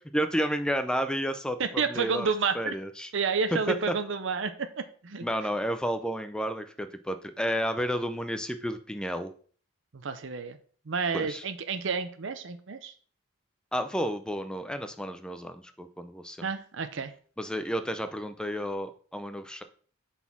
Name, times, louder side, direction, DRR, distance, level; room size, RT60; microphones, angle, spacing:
voice 1, 0.1-3.1 3.7-3.8 5.2-9.3 11.1-11.4 13.7-16.5 17.4-19.6, equal, 5° left, 9 dB, 0.5 m, -31 dB
voice 2, 1.6-2.7 3.1-5.3 9.9-10.6 10.9-12.9 16.4-17.1, right 5 dB, 65° right, 10 dB, 0.6 m, -30 dB
5.6 x 4.2 x 6.0 m, 0.44 s
head